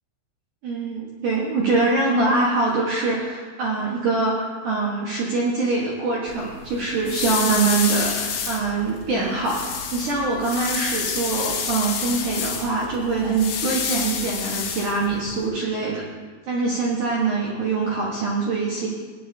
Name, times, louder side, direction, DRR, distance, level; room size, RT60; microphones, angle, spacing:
voice 1, 0.6-9.6 9.9-16.0 16.5-18.9, right 3 dB, 70° right, -4 dB, 1.9 m, -24 dB
sound 1, 6.3-15.5, left 6 dB, 75° left, 3.8 m, -29 dB
18.5 x 9.5 x 2.7 m, 1.5 s
omnidirectional pair, 5.5 m